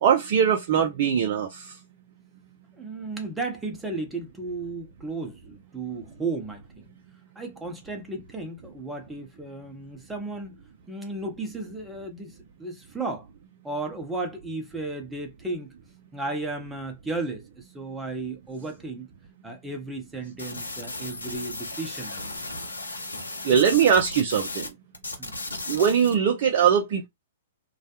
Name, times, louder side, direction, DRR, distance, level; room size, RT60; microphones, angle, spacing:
voice 1, 0.0-1.7 23.4-24.7 25.7-27.1, right 8 dB, 50° right, 0.5 m, -21 dB
voice 2, 2.8-6.9 7.4-10.6 10.9-13.3 13.6-15.7 16.1-19.1 19.4-22.2 25.2-25.4, right 3 dB, 10° right, 0.7 m, -34 dB
sound 1, 20.4-24.7 24.9-26.1, left 2 dB, 85° left, 0.6 m, -35 dB
2.3 x 2.1 x 2.8 m
figure-of-eight pair, 115°, 0 cm